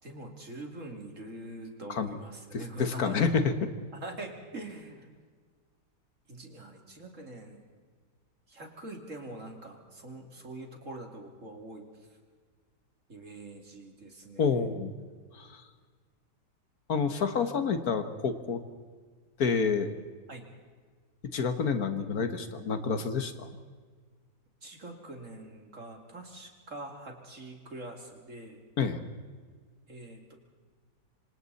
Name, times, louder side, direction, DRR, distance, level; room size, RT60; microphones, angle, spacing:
voice 1, 0.0-3.2 3.9-5.1 6.3-7.6 8.5-11.9 13.1-14.6 20.3-20.4 24.6-28.6 29.9-30.3, right 2 dB, 50° right, 2 dB, 3.2 m, -44 dB
voice 2, 2.5-3.7 14.4-14.9 15.3-15.6 16.9-18.6 19.4-19.9 21.3-23.5 28.8-29.0, left 5 dB, 60° left, 9 dB, 1.7 m, -28 dB
26.0 x 26.0 x 4.2 m, 1.5 s
omnidirectional pair, 1.8 m